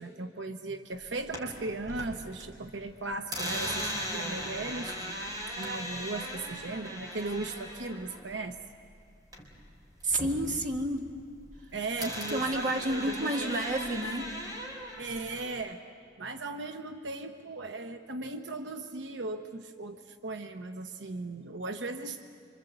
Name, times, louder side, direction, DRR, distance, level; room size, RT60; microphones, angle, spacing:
voice 1, 0.0-5.2 5.6-8.6 11.7-13.6 15.0-15.8 16.2-22.2, right 3 dB, 85° right, 6 dB, 1.0 m, -37 dB
sound 1, 1.0-2.4 2.7-9.7 10.0-11.6 12.0-15.5, equal, 20° right, 4.1 m, -38 dB
voice 2, 10.0-11.1 12.3-14.3, right 1 dB, 45° right, 2 dB, 1.9 m, -30 dB
26.5 x 26.0 x 8.1 m, 2.3 s
head